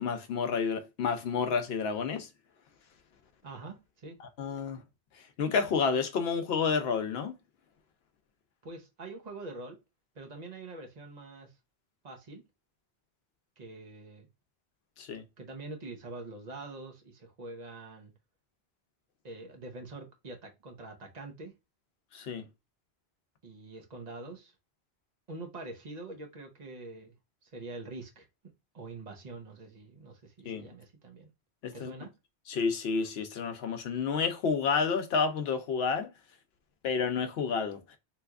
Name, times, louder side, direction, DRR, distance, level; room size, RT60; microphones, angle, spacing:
voice 1, 0.0-2.3 4.4-4.8 5.4-7.4 15.0-15.2 22.1-22.4 30.5-30.7 31.6-31.9 32.5-36.1 36.8-37.8, left 5 dB, 75° left, 0.8 m, -30 dB
voice 2, 3.4-4.2 8.6-9.8 10.1-11.5 12.0-12.4 13.6-14.3 15.4-18.1 19.2-21.5 23.4-24.5 25.3-27.1 27.4-28.3 28.7-31.3 31.7-32.1, right 2 dB, 45° right, 0.9 m, -45 dB
3.3 x 2.8 x 2.3 m
omnidirectional pair, 1.1 m